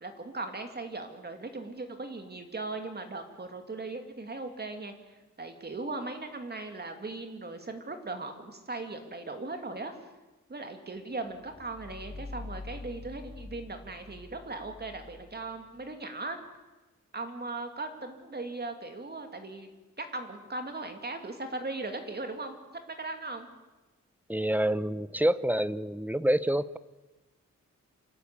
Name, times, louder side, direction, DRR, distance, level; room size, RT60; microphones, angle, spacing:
voice 1, 0.0-10.1 10.5-16.4 17.1-19.7 20.0-22.6 22.9-23.5, right 2 dB, 35° right, 5 dB, 2.4 m, -38 dB
sound 1, 11.2-15.9, left 2 dB, 90° right, 7.3 m, -45 dB
voice 2, 24.3-26.8, right 1 dB, 5° right, 15 dB, 0.6 m, -27 dB
27.0 x 12.0 x 8.6 m, 1.1 s
wide cardioid pair, 135°, 29 cm